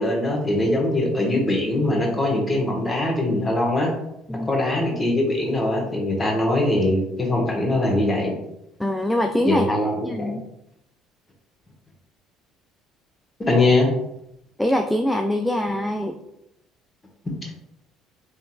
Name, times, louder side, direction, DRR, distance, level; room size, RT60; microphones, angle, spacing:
voice 1, 0.0-3.9 4.5-8.3 9.4-10.4 13.5-13.9, left 1 dB, 20° left, 0 dB, 1.2 m, -22 dB
voice 2, 8.8-10.5 14.6-16.2, left 1 dB, 5° left, 5 dB, 0.3 m, -24 dB
5.1 x 3.0 x 2.2 m, 0.82 s
figure-of-eight pair, 55°, 0 cm